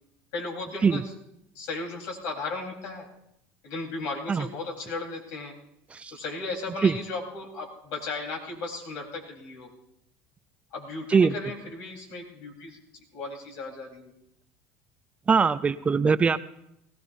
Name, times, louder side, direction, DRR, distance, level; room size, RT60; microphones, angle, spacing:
voice 1, 0.3-1.1 1.5-3.1 3.6-5.5 6.1-9.7 10.7-12.8 13.1-14.1, left 3 dB, 65° left, 0 dB, 4.0 m, -35 dB
voice 2, 15.3-16.4, right 5 dB, 20° right, 13 dB, 0.4 m, -21 dB
20.0 x 16.5 x 2.7 m, 0.78 s
supercardioid pair, 105°, 6 cm